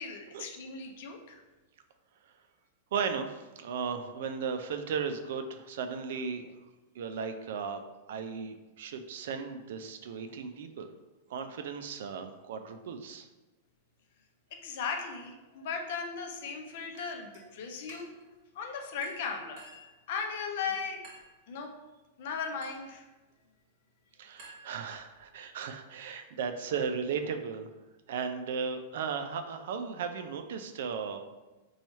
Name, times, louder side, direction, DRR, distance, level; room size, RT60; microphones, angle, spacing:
voice 1, 0.0-1.4 14.5-18.2 18.5-19.6 20.1-21.0 21.5-21.7 22.2-23.0, left 5 dB, 60° left, 3 dB, 0.6 m, -37 dB
voice 2, 2.9-6.5 6.9-7.8 8.1-10.9 11.3-13.3 24.2-27.7 28.1-31.3, right 6 dB, 70° right, 7 dB, 0.4 m, -36 dB
Chink clink, 16.9-17.5 17.9-18.3 19.0-20.0 21.0-21.4 22.6-23.0 24.4-25.2, right 2 dB, 45° right, 1.0 m, -53 dB
3.0 x 2.3 x 4.1 m, 1.1 s
supercardioid pair, 155°, 0 cm